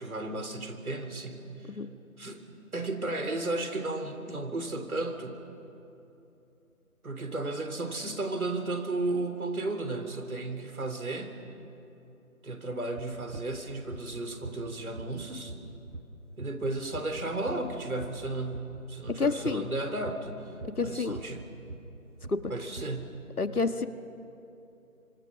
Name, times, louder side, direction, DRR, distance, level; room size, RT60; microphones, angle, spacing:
voice 1, 0.0-1.8 2.2-5.4 7.0-11.4 12.4-15.5 16.4-20.4 20.8-21.4 22.5-23.2, right 2 dB, 75° right, 6 dB, 3.4 m, -34 dB
sound 1, 13.0-19.7 20.0-23.0, right 2 dB, 55° right, 2.1 m, -42 dB
voice 2, 19.2-19.7 20.8-21.2 22.3-22.4 23.4-23.9, left 4 dB, 85° left, 9 dB, 1.6 m, -28 dB
28.0 x 25.5 x 6.3 m, 2.9 s
figure-of-eight pair, 170°, 44 cm